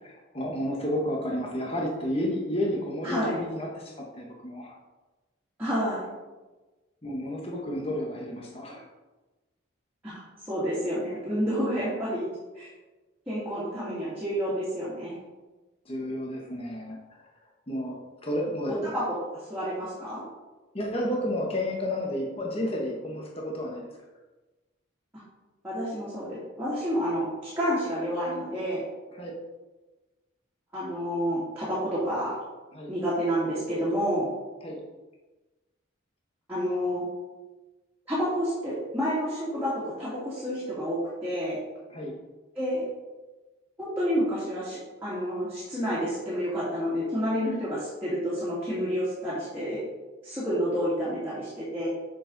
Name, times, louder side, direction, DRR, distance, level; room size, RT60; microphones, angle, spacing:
voice 1, 0.0-4.7 7.0-8.9 11.7-11.8 15.9-17.2 17.7-18.9 20.7-23.9 29.1-29.3 32.7-32.9 34.6-34.8 41.9-42.1, left 1 dB, 30° left, -1 dB, 1.1 m, -31 dB
voice 2, 3.0-3.4 5.6-6.1 10.0-10.2 10.5-12.3 12.5-12.7 13.3-15.2 18.8-20.2 25.6-28.8 30.7-32.3 32.9-34.3 36.5-37.0 38.1-41.6 42.5-42.8 43.8-49.8 50.2-51.9, equal, 10° right, -11 dB, 2.5 m, -29 dB
7.4 x 6.5 x 4.0 m, 1.2 s
head